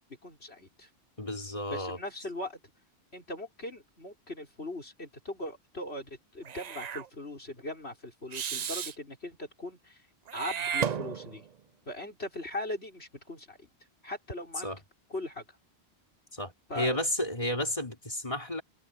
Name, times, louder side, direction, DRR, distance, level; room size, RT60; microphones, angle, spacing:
voice 1, 0.2-0.9 1.7-2.6 3.1-10.0 10.3-11.4 11.9-13.7 14.0-14.7 15.1-15.5 16.7-17.0, left 1 dB, 75° left, 6.1 m, -39 dB
voice 2, 1.2-2.0 14.6-14.8 16.3-18.6, left 1 dB, 30° left, 3.6 m, -32 dB
Meow / Hiss, 6.4-7.1 8.3-9.0 10.3-11.5, right 7 dB, 45° right, 0.6 m, -33 dB
omnidirectional pair, 1.1 m